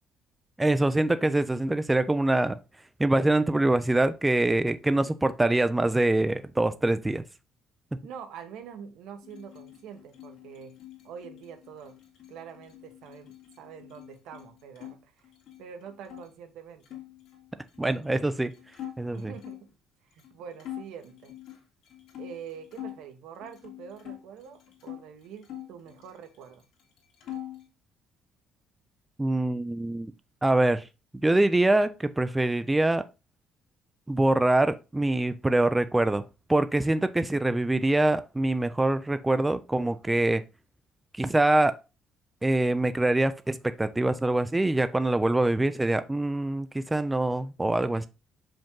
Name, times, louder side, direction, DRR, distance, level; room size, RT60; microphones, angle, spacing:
voice 1, 0.6-2.6 3.0-7.2 17.8-18.5 19.0-19.3 29.2-30.1 30.4-30.9 31.2-33.0 34.1-36.2 36.5-40.4 41.1-41.8 42.4-48.1, right 2 dB, 10° right, 0.3 m, -24 dB
voice 2, 8.0-10.8 11.0-11.9 12.3-15.3 15.6-17.0 19.1-19.7 20.1-21.3 22.2-26.6 47.6-48.1, right 7 dB, 80° right, 1.2 m, -45 dB
sound 1, 9.2-14.9 15.2-16.3 16.8-19.7 20.2-20.3 20.6-23.0 23.4-25.0 25.4-26.5 26.8-27.7, left 12 dB, 75° left, 1.9 m, -44 dB
5.9 x 5.2 x 3.7 m
cardioid pair, 160°, 0 cm